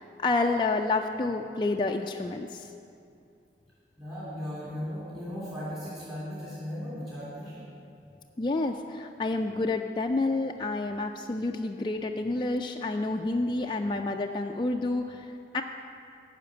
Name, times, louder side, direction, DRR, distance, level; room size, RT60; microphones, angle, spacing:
voice 1, 0.0-2.7 8.4-15.6, left 2 dB, 25° left, 3 dB, 0.3 m, -29 dB
voice 2, 4.0-7.6, equal, 20° right, -10 dB, 2.7 m, -37 dB
10.5 x 5.8 x 8.7 m, 2.5 s
head